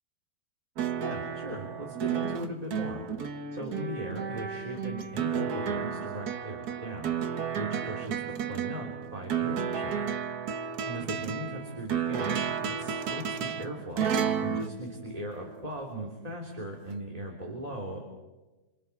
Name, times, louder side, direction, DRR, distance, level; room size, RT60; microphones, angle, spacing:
sound 1, 0.8-15.7 16.9-17.0, right 7 dB, 60° right, 1.5 m, -32 dB
voice 1, 1.0-3.1 3.5-7.1 7.5-8.2 8.5-10.0 10.8-12.4 12.8-14.1 14.4-18.0, right 1 dB, 20° right, -1 dB, 3.4 m, -38 dB
29.0 x 28.5 x 4.8 m, 1.2 s
omnidirectional pair, 2.0 m